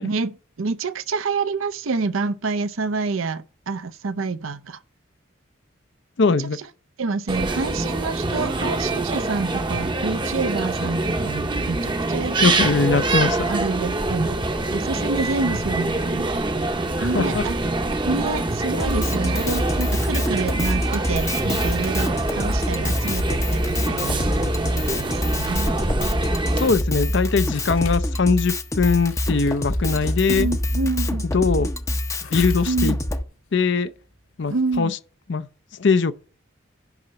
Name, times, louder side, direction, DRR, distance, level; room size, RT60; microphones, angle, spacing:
voice 1, 0.0-4.8 6.4-6.7 7.0-14.4 14.7-16.5 17.0-17.6 17.9-25.7 30.3-31.2 32.7-33.0 34.5-34.9, right 4 dB, 75° right, 0.6 m, -28 dB
voice 2, 6.2-6.6 12.4-13.6 17.0-17.4 26.6-30.5 31.3-31.7 32.3-33.0 33.5-33.9 34.4-34.9 35.3-35.5 35.8-36.1, left 4 dB, 55° left, 0.5 m, -21 dB
sound 1, 7.3-26.7, right 2 dB, 20° right, 0.8 m, -25 dB
Drum kit, 18.8-33.2, left 1 dB, 15° left, 0.6 m, -25 dB
sound 2, 27.3-34.8, left 4 dB, 80° left, 1.8 m, -43 dB
11.0 x 4.0 x 7.7 m
head